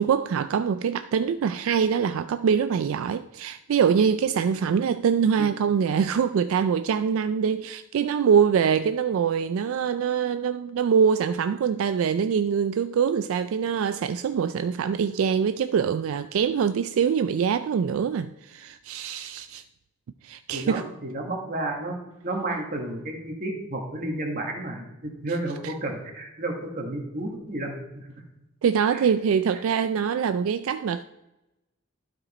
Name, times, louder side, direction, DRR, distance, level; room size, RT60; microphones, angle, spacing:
voice 1, 0.0-19.6 20.2-20.9 25.6-25.7 28.6-31.0, right 7 dB, 70° right, 0.3 m, -24 dB
voice 2, 20.5-22.0 22.2-28.1 28.9-29.0, right 2 dB, 40° right, 1.6 m, -32 dB
12.0 x 5.0 x 4.2 m
head